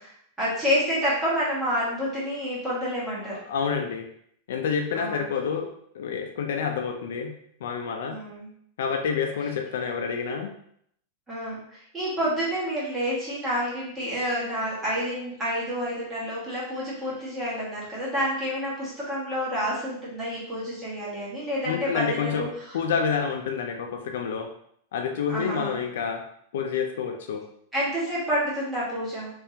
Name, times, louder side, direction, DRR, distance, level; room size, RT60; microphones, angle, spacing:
voice 1, 0.0-3.4 4.9-5.2 8.0-8.5 11.3-22.8 25.3-25.8 27.7-29.3, equal, 10° right, -9 dB, 1.5 m, -29 dB
voice 2, 3.5-4.1 4.5-7.3 7.6-8.2 8.8-10.5 21.6-22.5 22.7-24.5 24.9-26.2 26.5-27.4, left 6 dB, 75° left, 4 dB, 0.5 m, -28 dB
3.5 x 3.4 x 2.8 m, 0.68 s
supercardioid pair, 165°, 0 cm